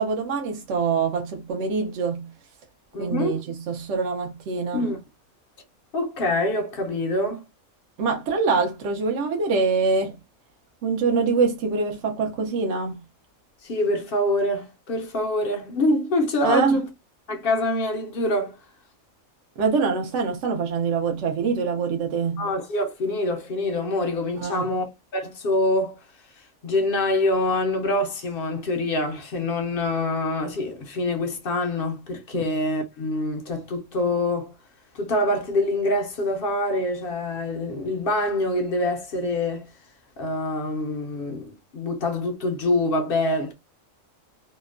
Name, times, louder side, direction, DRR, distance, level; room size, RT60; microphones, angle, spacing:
voice 1, 0.0-2.3 3.0-4.9 8.0-10.1 10.8-13.0 16.4-16.8 19.6-22.4 24.4-24.7 32.3-32.5, right 5 dB, 65° right, 0.9 m, -24 dB
voice 2, 2.9-3.4 4.7-5.0 5.9-7.4 13.6-16.9 17.3-18.6 22.4-25.9 26.6-34.5 34.9-39.7 40.2-43.5, left 1 dB, 55° left, 0.7 m, -25 dB
2.8 x 2.1 x 2.4 m
omnidirectional pair, 1.4 m